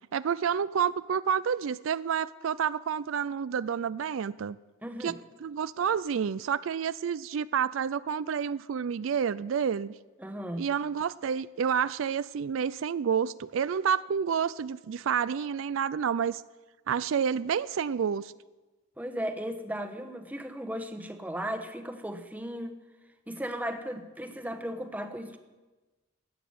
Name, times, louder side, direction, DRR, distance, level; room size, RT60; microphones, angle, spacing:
voice 1, 0.1-4.6 5.0-5.1 5.4-9.9 10.6-16.4 16.9-18.3, right 7 dB, 70° right, 16 dB, 0.4 m, -29 dB
voice 2, 4.8-5.2 10.2-10.7 19.0-22.8 23.3-25.4, equal, 10° right, 7 dB, 1.1 m, -36 dB
15.0 x 8.8 x 9.3 m, 1.2 s
head